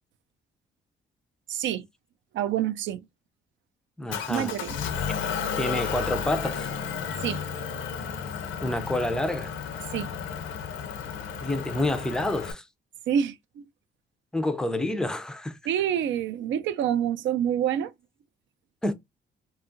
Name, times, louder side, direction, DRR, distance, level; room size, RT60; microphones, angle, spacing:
voice 1, 1.5-1.9 2.3-3.0 4.3-4.8 7.2-7.4 9.9-10.1 13.1-13.4 15.7-17.9, right 9 dB, 70° right, 0.4 m, -27 dB
voice 2, 4.0-4.5 5.6-6.7 8.6-9.5 11.4-12.6 14.3-15.6 18.8-18.9, left 1 dB, 5° left, 0.4 m, -28 dB
Motor vehicle (road) / Engine, 4.1-12.5, left 7 dB, 75° left, 0.5 m, -33 dB
2.8 x 2.3 x 2.5 m
cardioid pair, 90°, 20 cm